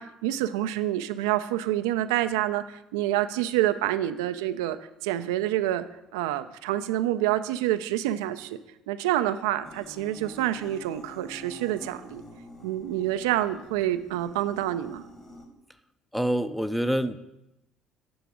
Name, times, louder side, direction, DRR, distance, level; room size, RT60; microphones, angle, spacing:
voice 1, 0.0-4.8 5.0-5.9 6.1-8.6 8.9-12.2 12.6-15.0, right 13 dB, 90° right, 11 dB, 0.3 m, -27 dB
sound 1, 9.6-15.5, left 1 dB, 20° left, 1.6 m, -47 dB
voice 2, 16.1-17.2, equal, ahead, 12 dB, 0.5 m, -26 dB
9.2 x 3.5 x 6.2 m, 0.91 s
supercardioid pair, 70°, 2 cm